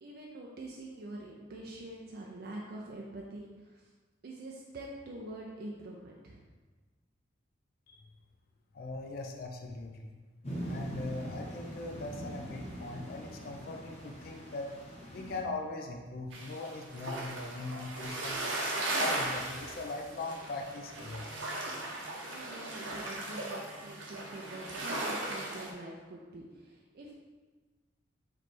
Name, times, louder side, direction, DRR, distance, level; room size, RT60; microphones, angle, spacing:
voice 1, 0.0-3.9 4.2-6.4 21.8-27.1, right 1 dB, 55° right, -2 dB, 0.4 m, -45 dB
voice 2, 8.7-10.1 10.6-14.7 15.1-18.5 19.0-21.3, left 2 dB, 55° left, 2 dB, 0.4 m, -40 dB
sound 1, 10.4-15.4, right 1 dB, 35° left, 0.9 m, -42 dB
sound 2, 16.3-25.7, right 2 dB, 80° right, 0.8 m, -37 dB
3.2 x 3.0 x 4.2 m, 1.3 s
head